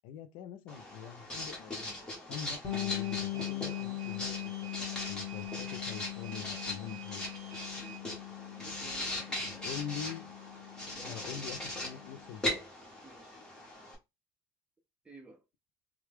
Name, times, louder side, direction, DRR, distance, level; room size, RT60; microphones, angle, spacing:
voice 1, 0.0-7.3 9.4-10.3 11.0-12.6, left 8 dB, 75° left, 0.5 m, -44 dB
Writing, 0.7-14.0, left 1 dB, 10° left, 1.3 m, -40 dB
Bass guitar, 2.6-12.3, left 16 dB, 45° left, 1.2 m, -41 dB
sound 1, 2.6-8.0, right 8 dB, 70° right, 0.7 m, -50 dB
voice 2, 8.5-9.7 10.8-11.6 13.0-13.4 15.0-15.4, right 2 dB, 15° right, 0.8 m, -54 dB
3.2 x 2.3 x 3.5 m
cardioid pair, 135°, 8 cm